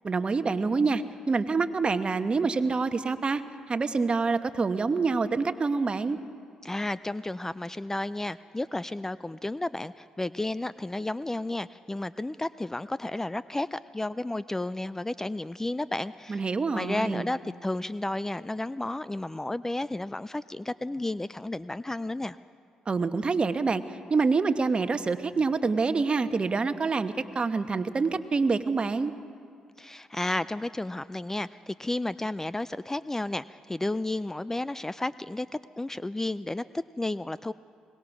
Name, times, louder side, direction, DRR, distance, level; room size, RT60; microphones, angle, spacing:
voice 1, 0.0-3.4 3.7-6.2 16.3-17.3 22.9-23.8 24.1-29.1, right 4 dB, 40° right, 10 dB, 1.1 m, -26 dB
voice 2, 6.6-16.4 16.7-22.4 29.8-35.5 35.8-37.5, left 2 dB, 15° left, 16 dB, 0.4 m, -32 dB
22.5 x 19.5 x 6.1 m, 2.2 s
hypercardioid pair, 50°, 3 cm